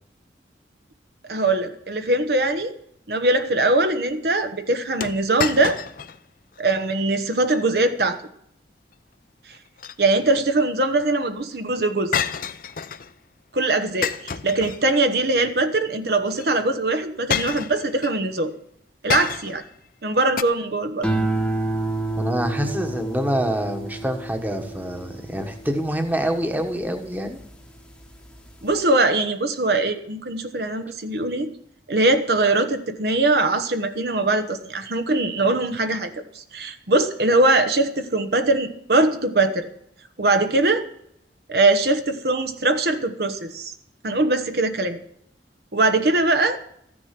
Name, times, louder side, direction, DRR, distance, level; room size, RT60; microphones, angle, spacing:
voice 1, 1.3-2.7 3.1-5.8 6.6-8.2 10.0-12.1 13.5-18.5 19.0-19.6 20.0-21.1 28.6-31.5 31.9-39.7 40.2-40.8 41.5-43.7 44.0-45.0 45.7-46.6, right 2 dB, 60° right, 8 dB, 1.1 m, -21 dB
sound 1, 5.0-6.2 6.6-6.7 7.3-7.6 9.5-10.4 12.1-13.1 14.0-15.2 16.3-16.5 17.3-18.2 19.1-19.7 20.4-20.5, left 7 dB, 50° left, 0.6 m, -29 dB
sound 2, 21.0-27.6 28.0-28.5, right 2 dB, 5° left, 1.1 m, -29 dB
voice 2, 22.2-27.4, equal, 10° right, 5 dB, 1.3 m, -26 dB
14.5 x 9.9 x 5.9 m, 0.71 s
head